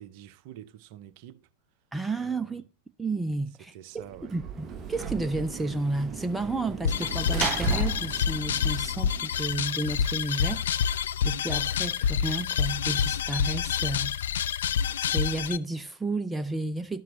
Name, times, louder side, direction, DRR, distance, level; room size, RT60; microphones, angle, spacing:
voice 1, 0.0-1.5 2.2-2.6 3.6-4.4, right 11 dB, 45° right, 0.7 m, -47 dB
voice 2, 1.9-2.6 3.0-10.9 11.2-14.1 15.0-17.0, right 2 dB, 5° right, 0.5 m, -32 dB
Sliding door / Slam, 4.1-9.5, right 6 dB, 25° right, 0.9 m, -35 dB
sound 1, 6.8-15.6, left 8 dB, 60° left, 0.4 m, -27 dB
12.5 x 7.5 x 2.7 m
figure-of-eight pair, 90°, 0 cm